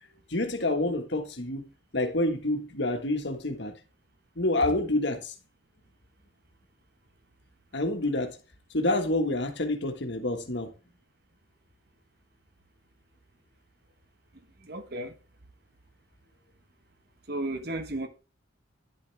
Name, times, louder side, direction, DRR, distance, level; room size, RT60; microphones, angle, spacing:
voice 1, 0.3-1.7 1.9-3.7 4.4-5.3 7.7-8.4 8.7-10.7, left 2 dB, 60° left, 1.6 m, -28 dB
voice 2, 14.6-15.1 17.3-18.1, right 1 dB, 55° right, 1.3 m, -33 dB
11.0 x 7.5 x 3.4 m
head